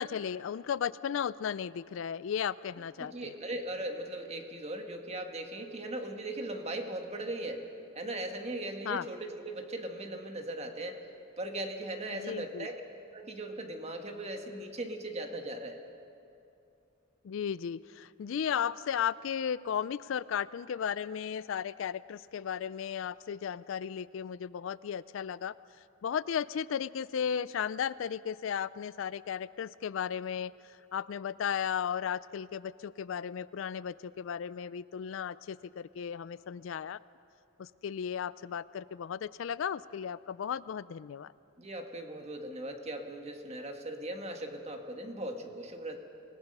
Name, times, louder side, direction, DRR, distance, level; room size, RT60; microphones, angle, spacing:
voice 1, 0.0-3.3 8.9-9.1 12.1-12.7 17.2-25.5 26.0-30.5 30.9-37.0 37.6-41.3, left 8 dB, 70° left, 18 dB, 0.4 m, -35 dB
voice 2, 3.0-7.6 7.9-11.0 11.4-12.8 13.1-15.8 41.6-46.0, right 1 dB, 30° right, 4 dB, 1.6 m, -38 dB
26.0 x 18.5 x 5.4 m, 2.7 s
head